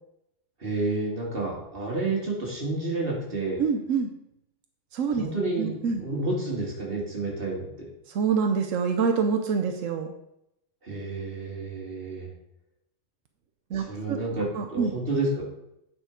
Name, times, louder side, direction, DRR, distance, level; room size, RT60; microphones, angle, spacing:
voice 1, 0.6-3.6 5.2-7.9 10.8-12.3 13.7-15.4, right 2 dB, 45° right, -2 dB, 2.2 m, -30 dB
voice 2, 3.6-4.1 4.9-5.2 5.6-6.0 8.1-10.1 13.7-14.2 14.5-14.9, right 6 dB, 90° right, 5 dB, 1.1 m, -26 dB
8.9 x 4.5 x 5.0 m, 0.81 s
omnidirectional pair, 1.3 m